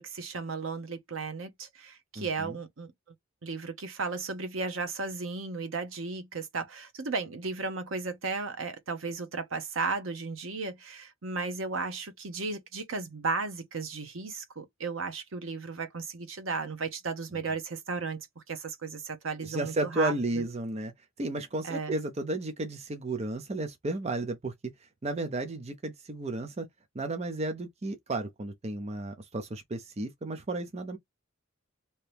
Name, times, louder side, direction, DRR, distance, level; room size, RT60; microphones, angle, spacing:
voice 1, 0.0-2.9 3.4-20.4 21.6-22.0, right 4 dB, 70° right, 0.9 m, -35 dB
voice 2, 2.2-2.6 19.4-20.9 21.2-24.7 25.0-26.7 26.9-31.0, right 2 dB, 30° right, 0.5 m, -33 dB
2.9 x 2.8 x 3.3 m
head